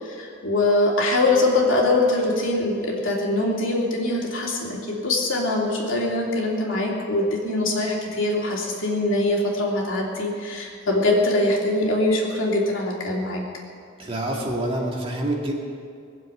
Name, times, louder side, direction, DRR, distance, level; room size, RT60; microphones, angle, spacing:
voice 1, 0.0-13.4, left 2 dB, 70° left, -2 dB, 3.0 m, -23 dB
voice 2, 14.0-15.6, right 1 dB, 25° right, -1 dB, 2.2 m, -27 dB
21.0 x 7.6 x 9.0 m, 2.3 s
head